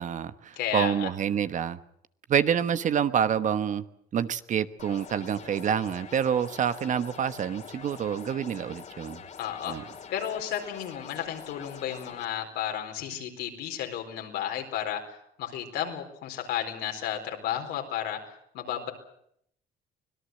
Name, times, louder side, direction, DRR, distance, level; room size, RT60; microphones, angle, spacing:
voice 1, 0.0-1.8 2.3-3.8 4.1-9.2 9.7-9.8, right 8 dB, 50° right, 13 dB, 1.2 m, -27 dB
voice 2, 0.6-1.1 9.4-9.8 10.1-18.9, left 10 dB, 85° left, 3 dB, 4.3 m, -33 dB
sound 1, 4.8-12.3, left 6 dB, 45° left, 2.8 m, -45 dB
25.0 x 18.0 x 7.8 m, 0.71 s
cardioid pair, 110°, 17 cm